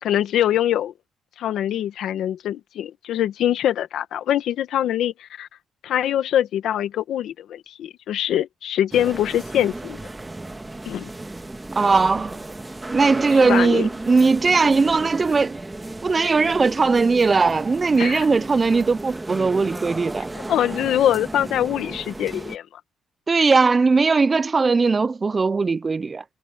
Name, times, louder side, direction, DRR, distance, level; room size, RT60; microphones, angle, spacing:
voice 1, 0.0-0.9 1.4-5.5 5.8-10.0 10.9-11.1 13.4-13.9 18.0-18.2 20.5-22.8, left 11 dB, 75° left, 1.9 m, -23 dB
sound 1, 8.9-22.6, right 2 dB, 15° right, 1.8 m, -34 dB
voice 2, 11.8-12.4 12.9-15.6 16.0-20.3 23.3-26.2, right 4 dB, 30° right, 0.7 m, -19 dB
cardioid pair, 90°, 0 cm